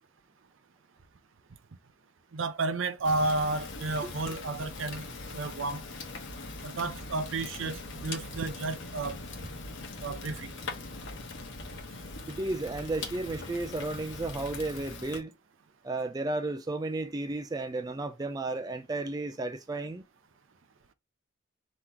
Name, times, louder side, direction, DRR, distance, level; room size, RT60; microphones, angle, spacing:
voice 1, 2.3-5.0 5.3-5.8 6.6-9.2 10.0-10.5, right 3 dB, 60° right, 0.6 m, -32 dB
Fire, 3.0-15.2, left 3 dB, 60° left, 1.1 m, -41 dB
voice 2, 12.3-15.3 15.8-20.0, right 2 dB, 20° right, 0.4 m, -33 dB
3.8 x 2.9 x 4.4 m
head